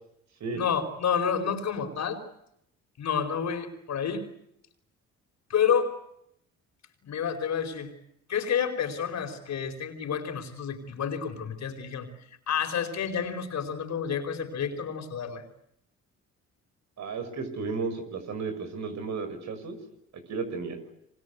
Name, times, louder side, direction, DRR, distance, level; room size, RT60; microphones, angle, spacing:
voice 1, 0.5-2.2 3.0-4.3 5.5-5.9 7.0-7.9 8.3-15.4, left 7 dB, 65° left, 7 dB, 4.7 m, -29 dB
voice 2, 17.0-19.8 20.3-20.8, right 4 dB, 65° right, 9 dB, 6.3 m, -33 dB
27.0 x 25.0 x 8.2 m, 0.76 s
cardioid pair, 90°, 30 cm